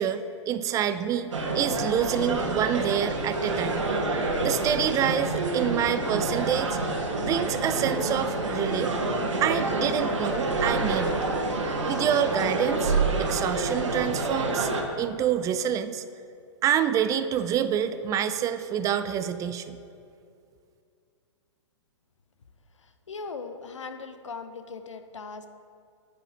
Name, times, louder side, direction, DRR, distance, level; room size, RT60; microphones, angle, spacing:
voice 1, 0.0-3.9 4.4-6.8 7.2-8.9 9.4-11.2 11.8-14.7 15.0-16.0 16.6-19.8, right 9 dB, 20° right, 11 dB, 0.4 m, -27 dB
sound 1, 1.3-14.8, right 2 dB, 75° right, 1.5 m, -28 dB
voice 2, 22.8-25.5, left 4 dB, 80° left, 9 dB, 0.8 m, -39 dB
9.9 x 8.5 x 4.0 m, 2.4 s
hypercardioid pair, 115°, 16 cm